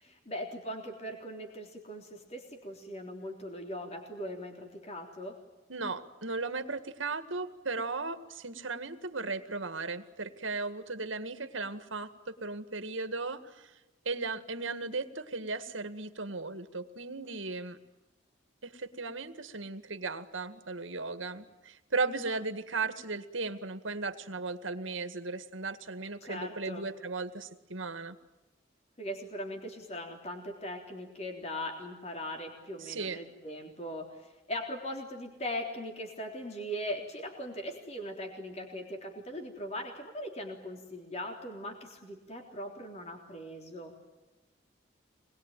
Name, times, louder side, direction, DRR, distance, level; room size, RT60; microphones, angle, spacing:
voice 1, 0.0-5.4 26.2-26.9 29.0-43.9, equal, 35° left, 3 dB, 3.6 m, -40 dB
voice 2, 5.7-13.7 14.1-17.8 18.6-28.2 32.8-33.2, right 3 dB, 85° right, 10 dB, 2.0 m, -36 dB
26.0 x 21.0 x 9.3 m, 1.1 s
head